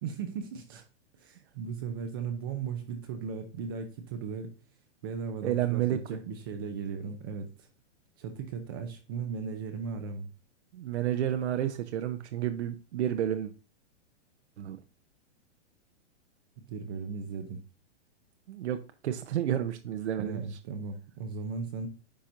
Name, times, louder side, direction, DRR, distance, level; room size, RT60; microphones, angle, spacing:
voice 1, 0.0-0.8 1.2-4.5 5.0-7.7 8.2-10.3 16.6-17.6 20.2-21.9, right 5 dB, 20° right, 6 dB, 0.5 m, -37 dB
voice 2, 5.4-6.2 10.7-13.5 14.6-14.8 18.5-20.4, right 11 dB, 70° right, 7 dB, 0.8 m, -30 dB
9.8 x 4.3 x 2.6 m, 0.34 s
hypercardioid pair, 165°, 35 cm